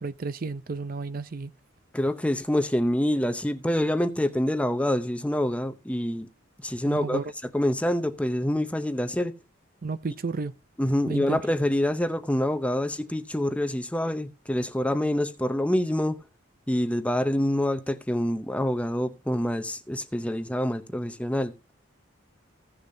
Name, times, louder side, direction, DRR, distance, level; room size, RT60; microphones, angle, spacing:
voice 1, 0.0-1.5 6.9-7.2 9.8-10.5 11.1-11.4, right 4 dB, 45° right, 0.5 m, -32 dB
voice 2, 1.9-6.3 6.6-7.2 7.5-9.3 10.8-16.2 16.7-21.5, left 1 dB, 5° left, 0.6 m, -26 dB
16.0 x 6.7 x 2.7 m
head